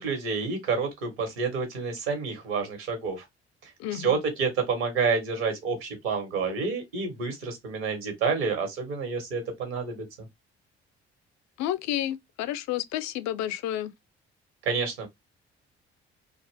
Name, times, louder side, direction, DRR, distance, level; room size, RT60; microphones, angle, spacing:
voice 1, 0.0-3.2 3.6-10.3 14.6-15.1, right 5 dB, 75° right, 1.2 m, -29 dB
voice 2, 3.8-4.2 11.6-13.9, left 12 dB, 60° left, 0.5 m, -30 dB
2.5 x 2.4 x 3.3 m
figure-of-eight pair, 45°, 32 cm